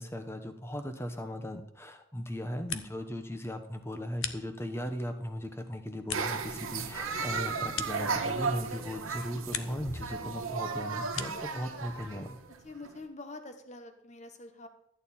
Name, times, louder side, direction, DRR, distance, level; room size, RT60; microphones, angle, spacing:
voice 1, 0.0-12.4, equal, 10° left, 7 dB, 0.9 m, -38 dB
sound 1, 2.4-3.2 3.5-4.9 5.4-8.6 9.0-9.9 10.2-11.6, left 9 dB, 80° left, 0.9 m, -42 dB
sound 2, 6.1-13.0, right 4 dB, 85° right, 1.2 m, -35 dB
voice 2, 12.6-14.7, left 2 dB, 35° left, 7 dB, 1.1 m, -45 dB
13.5 x 9.1 x 4.3 m, 0.79 s
head